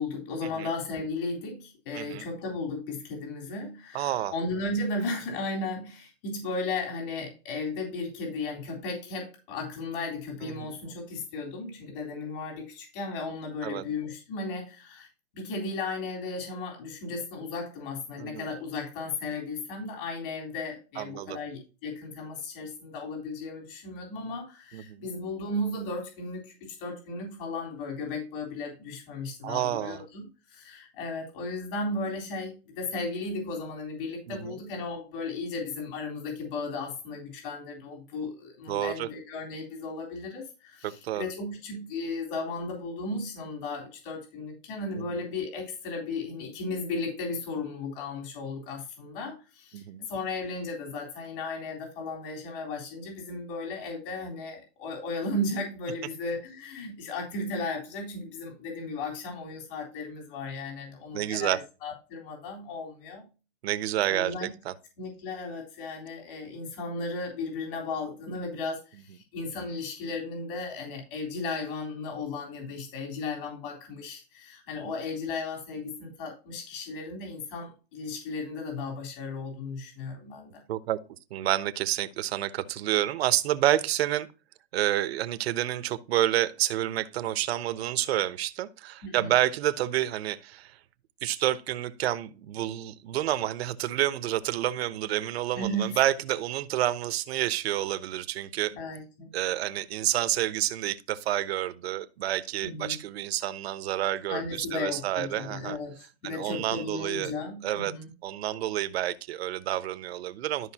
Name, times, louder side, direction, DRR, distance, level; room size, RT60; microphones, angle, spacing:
voice 1, 0.0-15.1 15.3-30.2 30.5-63.2 64.1-64.5 65.0-80.6 89.0-89.3 95.5-96.0 98.7-99.3 102.6-103.0 104.3-106.0 106.2-108.1, left 3 dB, 55° left, 3.8 m, -35 dB
voice 2, 1.9-2.2 3.9-4.3 10.4-10.8 13.6-13.8 18.2-18.5 21.0-21.4 24.7-25.1 29.4-30.0 34.3-34.6 38.7-39.1 40.8-41.3 44.9-45.2 49.7-50.1 61.1-61.6 63.6-64.7 74.8-74.9 80.7-81.0 81.3-84.3 84.7-90.8 91.2-98.7 99.3-105.8 106.2-107.3 107.6-107.9 108.2-110.7, right 13 dB, 70° right, 1.0 m, -29 dB
13.0 x 5.3 x 2.9 m
supercardioid pair, 160°, 33 cm